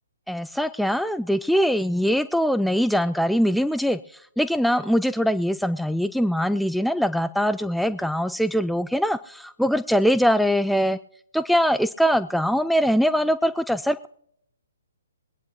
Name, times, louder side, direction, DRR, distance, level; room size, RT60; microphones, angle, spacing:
voice 1, 0.3-11.0 11.3-14.1, equal, ahead, 12 dB, 0.4 m, -22 dB
23.5 x 9.5 x 2.7 m, 0.72 s
figure-of-eight pair, 130°, 0 cm